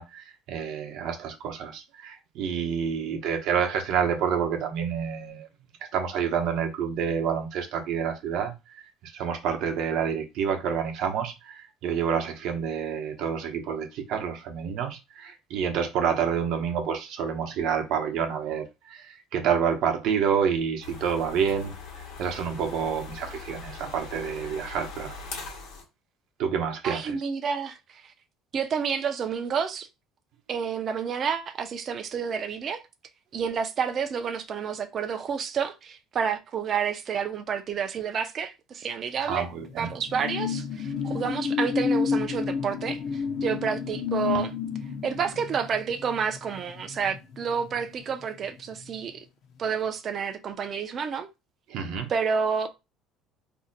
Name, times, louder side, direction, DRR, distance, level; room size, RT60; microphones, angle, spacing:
voice 1, 0.0-5.5 5.9-8.5 9.1-21.7 22.2-25.2 26.4-27.2 39.3-39.9 44.3-44.4 51.7-52.1, right 7 dB, 65° right, 0.7 m, -28 dB
sound 1, 20.8-25.8, left 4 dB, 75° left, 1.1 m, -41 dB
voice 2, 26.8-28.1 28.5-29.9 30.5-32.8 33.3-39.5 39.8-44.5 45.0-49.2 49.6-51.3 52.1-52.7, right 6 dB, 40° right, 0.4 m, -29 dB
sound 2, 39.2-48.2 48.6-48.8, left 6 dB, 55° left, 0.6 m, -31 dB
2.6 x 2.1 x 3.9 m
cardioid pair, 135°, 0 cm